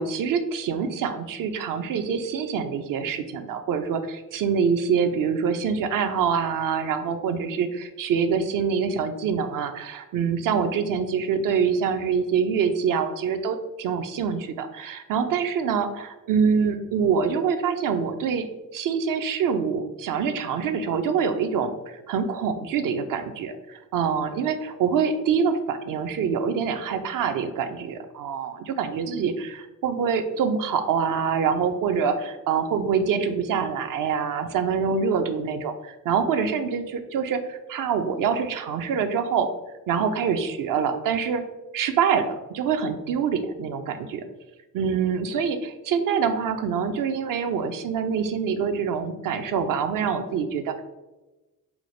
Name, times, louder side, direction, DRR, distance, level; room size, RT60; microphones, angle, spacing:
voice 1, 0.0-18.5 18.7-39.5 39.9-41.4 41.7-44.2 44.7-50.8, right 6 dB, 55° right, 8 dB, 0.5 m, -25 dB
4.5 x 2.0 x 3.1 m, 1.1 s
hypercardioid pair, 50°, 40 cm